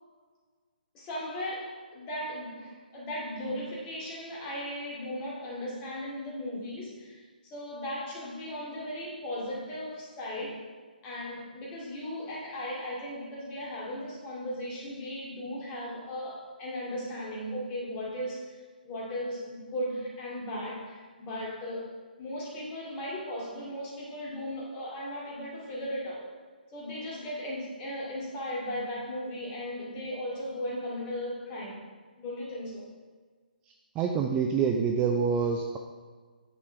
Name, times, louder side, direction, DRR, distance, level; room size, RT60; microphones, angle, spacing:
voice 1, 0.9-10.6 11.0-21.9 22.2-26.3 26.7-31.9 32.2-32.9, left 1 dB, 20° left, -5 dB, 2.5 m, -37 dB
voice 2, 34.0-35.8, right 6 dB, 15° right, 3 dB, 0.4 m, -26 dB
9.8 x 7.3 x 3.4 m, 1.5 s
figure-of-eight pair, 135°, 5 cm